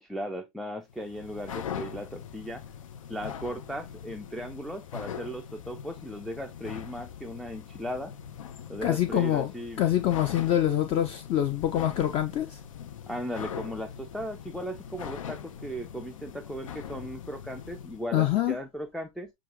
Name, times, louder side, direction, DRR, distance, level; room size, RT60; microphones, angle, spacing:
voice 1, 0.0-2.6 3.1-8.1 8.7-9.8 13.1-19.3, equal, ahead, 0.4 m, -37 dB
sound 1, 0.9-18.1, left 8 dB, 75° left, 0.8 m, -42 dB
voice 2, 8.8-9.5 9.8-12.6 18.1-18.6, left 12 dB, 35° left, 0.7 m, -25 dB
7.5 x 2.5 x 2.9 m
hypercardioid pair, 115°, 17 cm